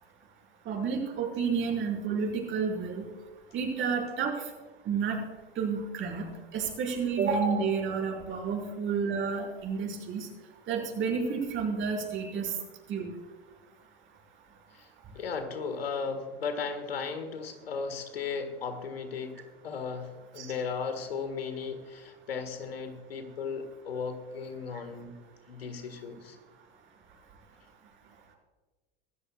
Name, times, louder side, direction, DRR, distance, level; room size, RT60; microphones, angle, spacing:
voice 1, 0.7-3.1 3.5-4.4 4.9-5.2 5.6-10.3 10.7-12.5 12.9-13.1 20.4-20.5, right 5 dB, 40° right, 0 dB, 5.5 m, -30 dB
voice 2, 15.1-25.1 25.5-26.4, left 5 dB, 80° left, 7 dB, 1.8 m, -36 dB
26.0 x 14.0 x 2.4 m, 1.3 s
hypercardioid pair, 85°, 29 cm